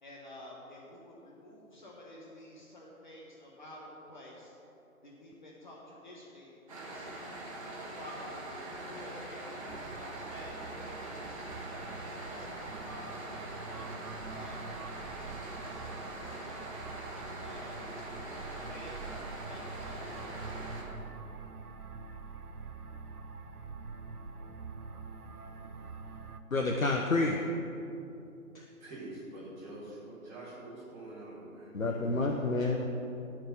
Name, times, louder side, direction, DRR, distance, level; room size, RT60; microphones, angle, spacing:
voice 1, 0.0-4.5 5.0-7.3 7.8-13.9 14.3-16.6 17.4-20.6, left 1 dB, 30° left, -4 dB, 1.3 m, -51 dB
sound 1, 6.7-20.8, right 1 dB, 25° right, 1.7 m, -43 dB
sound 2, 9.7-26.4, right 4 dB, 90° right, 0.8 m, -45 dB
voice 2, 26.5-27.4 28.5-28.6 31.7-32.9, left 2 dB, 65° left, 2 dB, 1.0 m, -29 dB
voice 3, 28.8-32.3, right 1 dB, 5° right, -12 dB, 1.8 m, -46 dB
13.5 x 4.8 x 7.5 m, 2.8 s
figure-of-eight pair, 150°, 44 cm